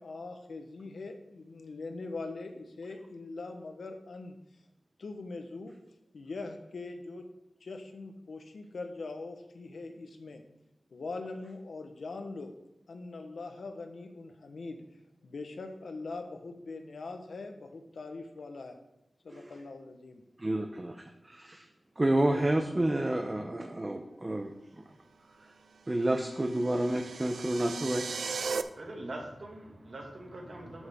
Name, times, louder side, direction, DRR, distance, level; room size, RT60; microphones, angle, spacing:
voice 1, 0.0-4.4 5.0-5.7 6.1-7.2 7.6-10.4 10.9-12.5 12.9-14.8 15.2-18.7 19.2-20.2, left 3 dB, 75° left, 5 dB, 1.2 m, -42 dB
voice 2, 20.4-20.9 21.3-21.6 22.0-24.5 25.9-28.0, right 1 dB, 25° right, 4 dB, 0.7 m, -29 dB
sound 1, 26.0-28.6, right 5 dB, 85° right, 0.4 m, -37 dB
voice 3, 28.4-30.9, right 1 dB, 50° right, 0 dB, 2.2 m, -43 dB
12.5 x 6.4 x 3.7 m, 0.85 s
wide cardioid pair, 110°, 0 cm